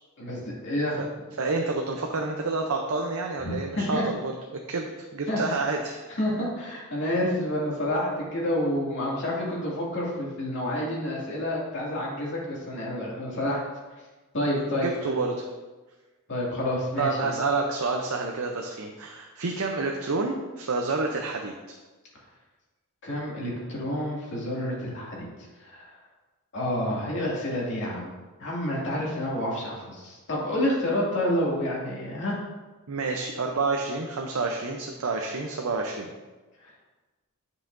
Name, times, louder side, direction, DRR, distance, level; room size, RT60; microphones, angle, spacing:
voice 1, 0.2-1.0 3.4-4.0 5.3-5.6 6.2-13.6 14.3-15.2 16.3-17.3 23.0-25.3 25.6-25.9 26.5-28.1 28.4-32.4 36.6-36.7, left 1 dB, 55° left, -5 dB, 2.3 m, -29 dB
voice 2, 1.4-6.0 14.8-15.5 17.0-21.8 32.9-36.1, right 3 dB, 70° right, 2 dB, 0.6 m, -29 dB
10.0 x 5.6 x 2.6 m, 1.2 s
head